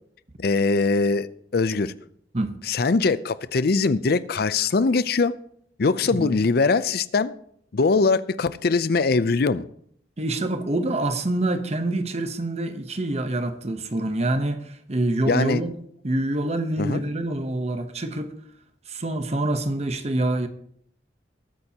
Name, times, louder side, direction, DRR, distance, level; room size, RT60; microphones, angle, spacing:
voice 1, 0.4-1.3 1.5-1.9 2.7-5.3 5.8-7.3 7.7-9.6 15.2-15.6 16.8-17.0, left 4 dB, 60° left, 0.5 m, -22 dB
voice 2, 10.2-15.7 16.0-18.3 18.9-20.5, right 1 dB, 35° right, 0.9 m, -26 dB
20.0 x 8.9 x 2.9 m
head